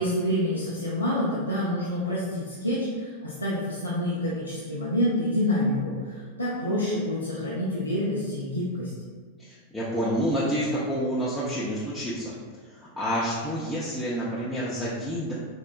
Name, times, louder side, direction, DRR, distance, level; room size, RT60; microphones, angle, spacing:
voice 1, 0.0-8.9, left 1 dB, 85° left, -8 dB, 0.5 m, -27 dB
voice 2, 9.4-12.3 12.6-15.3, equal, 5° left, -9 dB, 0.5 m, -28 dB
4.3 x 2.1 x 2.4 m, 1.5 s
figure-of-eight pair, 90°, 0 cm